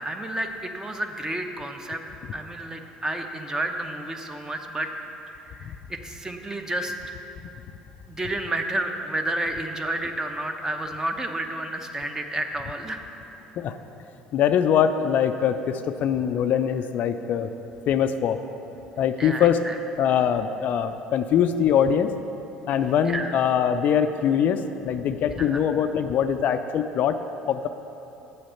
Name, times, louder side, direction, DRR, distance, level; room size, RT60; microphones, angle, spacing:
voice 1, 0.0-2.0 2.3-4.9 5.3-6.9 8.1-13.0 19.2-19.8 23.0-23.3 25.3-25.6, right 1 dB, 15° right, 5 dB, 0.9 m, -31 dB
voice 2, 14.3-17.5 17.9-18.4 19.0-19.6 20.0-22.1 22.7-27.2 27.5-27.7, left 8 dB, 50° left, 9 dB, 0.4 m, -22 dB
8.0 x 7.6 x 5.6 m, 2.9 s
hypercardioid pair, 65°, 3 cm